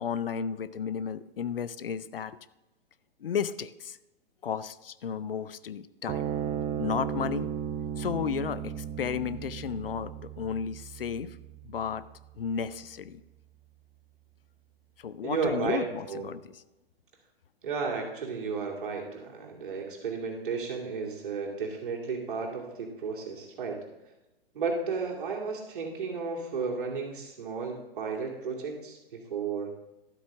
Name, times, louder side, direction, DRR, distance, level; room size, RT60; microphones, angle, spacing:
voice 1, 0.0-2.4 3.2-4.0 4.4-6.3 6.8-7.5 8.0-11.4 11.7-12.1 12.4-13.2 15.0-16.6, left 7 dB, 65° left, 15 dB, 0.5 m, -33 dB
sound 1, 6.1-12.7, right 9 dB, 15° right, 0.4 m, -36 dB
voice 2, 15.2-15.8 16.1-16.3 17.6-23.8 24.5-29.7, right 5 dB, 55° right, 0 dB, 2.5 m, -33 dB
12.5 x 8.2 x 3.6 m, 1.0 s
figure-of-eight pair, 110°, 30 cm